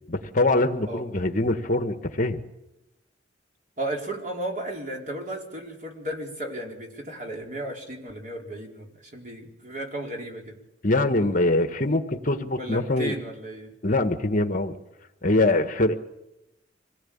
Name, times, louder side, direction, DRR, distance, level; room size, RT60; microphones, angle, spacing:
voice 1, 0.0-2.4 10.8-13.1 13.8-14.7 15.2-15.9, left 2 dB, 45° left, 8 dB, 1.5 m, -23 dB
voice 2, 0.9-1.2 3.8-10.6 12.6-13.7, right 1 dB, 45° right, 1 dB, 4.4 m, -34 dB
25.5 x 18.5 x 8.8 m, 0.96 s
head